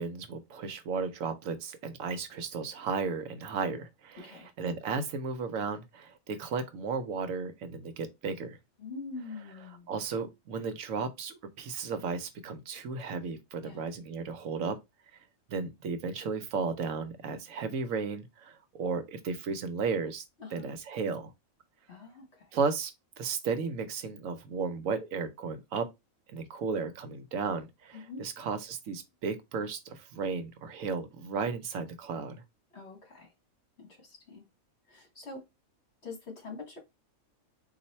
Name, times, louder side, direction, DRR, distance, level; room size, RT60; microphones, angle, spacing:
voice 1, 0.0-8.6 9.9-14.8 15.5-20.2 20.5-21.3 22.5-22.9 23.2-25.9 26.3-32.4, right 5 dB, 75° right, 1.0 m, -34 dB
voice 2, 4.2-4.5 8.8-9.9 13.6-13.8 20.4-20.7 21.9-22.6 27.9-28.3 32.7-33.3 33.8-34.4 34.9-35.5 36.0-36.8, left 4 dB, 50° left, 1.7 m, -44 dB
4.1 x 2.6 x 4.2 m
omnidirectional pair, 1.5 m